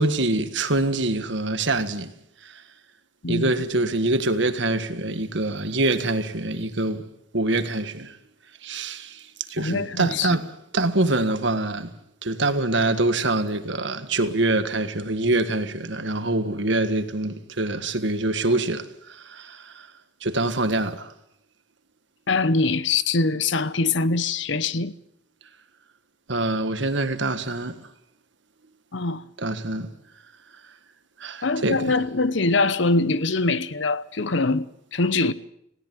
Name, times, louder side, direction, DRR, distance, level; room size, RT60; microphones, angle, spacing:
voice 1, 0.0-2.1 2.4-2.5 3.3-7.0 7.3-8.2 8.6-10.4 10.7-11.9 12.2-19.9 20.2-21.1 26.3-27.8 29.4-29.9 31.2-31.9, right 2 dB, 60° right, 1.7 m, -25 dB
voice 2, 9.6-10.4 22.3-24.9 28.9-29.2 31.4-35.3, left 3 dB, 60° left, 0.9 m, -23 dB
19.5 x 17.0 x 9.1 m
head